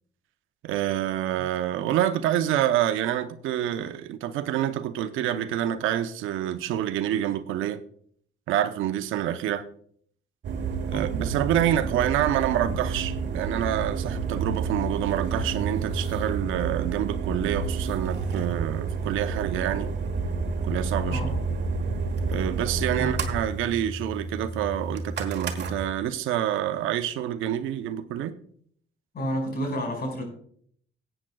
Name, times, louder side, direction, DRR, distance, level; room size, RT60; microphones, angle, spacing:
voice 1, 0.6-7.8 8.5-9.7 10.9-19.9 20.6-21.2 22.3-28.3, right 11 dB, 90° right, 0.7 m, -27 dB
sound 1, 10.4-25.9, right 4 dB, 60° right, 1.5 m, -30 dB
voice 2, 21.0-21.4 23.0-23.1 29.1-30.2, equal, 50° left, 5.1 m, -30 dB
18.5 x 8.9 x 2.3 m
cardioid pair, 90°, 20 cm